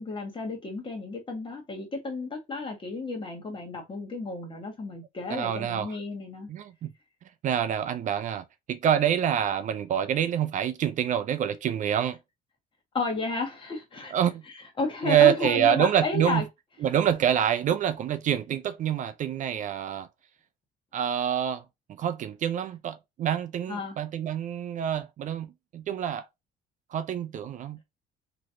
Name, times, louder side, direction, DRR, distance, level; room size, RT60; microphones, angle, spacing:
voice 1, 0.0-6.5 12.9-14.1 14.5-16.4 23.7-24.0, left 3 dB, 30° left, 1.4 m, -32 dB
voice 2, 5.3-6.0 6.5-6.9 7.4-12.2 14.1-14.4 15.0-16.4 16.8-20.1 20.9-21.6 22.0-26.3 26.9-27.8, right 10 dB, 50° right, 0.4 m, -26 dB
3.1 x 3.0 x 2.5 m
cardioid pair, 110°, 17 cm